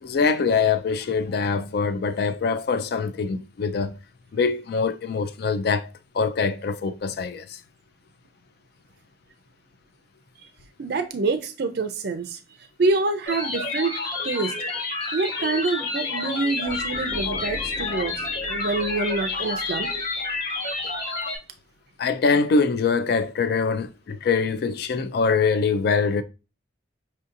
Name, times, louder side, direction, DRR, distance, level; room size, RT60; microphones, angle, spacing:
voice 1, 0.0-4.0 4.3-5.9 6.1-7.6 22.0-26.2, left 5 dB, 60° left, 0.3 m, -23 dB
voice 2, 10.8-12.4 12.8-13.9 14.2-14.5 15.1-18.1 18.5-19.9 20.2-20.4, right 3 dB, 60° right, 0.4 m, -26 dB
sound 1, 13.2-21.4, left 3 dB, 80° left, 2.3 m, -29 dB
sound 2, 16.7-20.4, equal, 10° left, 0.9 m, -41 dB
5.4 x 2.7 x 2.5 m
head